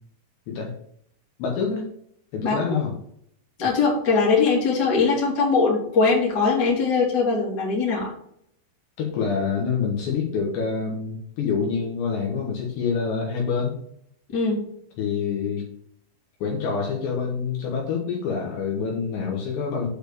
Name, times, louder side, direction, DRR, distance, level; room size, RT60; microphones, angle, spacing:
voice 1, 1.4-1.9 2.3-2.9 9.0-13.8 15.0-15.7 16.4-19.9, left 5 dB, 70° left, -1 dB, 3.2 m, -26 dB
voice 2, 3.6-8.1 14.3-14.6, left 4 dB, 25° left, -4 dB, 2.4 m, -21 dB
8.5 x 4.4 x 6.8 m, 0.70 s
omnidirectional pair, 5.9 m